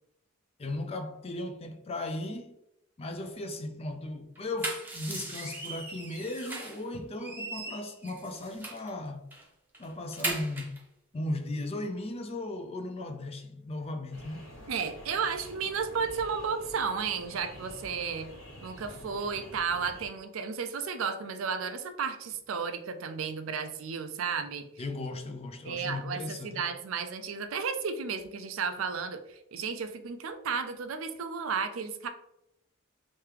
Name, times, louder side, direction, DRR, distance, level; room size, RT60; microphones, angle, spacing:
voice 1, 0.6-2.5 3.0-9.3 9.8-10.8 11.1-14.5 24.8-26.7, left 2 dB, 30° left, 0.4 m, -37 dB
sound 1, 4.4-6.8 7.2-8.9 9.3-9.4 9.7-10.8, right 2 dB, 10° right, 0.6 m, -38 dB
sound 2, 14.1-20.1, equal, 65° left, 1.3 m, -48 dB
voice 2, 14.7-18.3 18.6-24.6 25.7-32.1, right 5 dB, 70° right, 0.4 m, -33 dB
3.4 x 3.1 x 3.3 m
head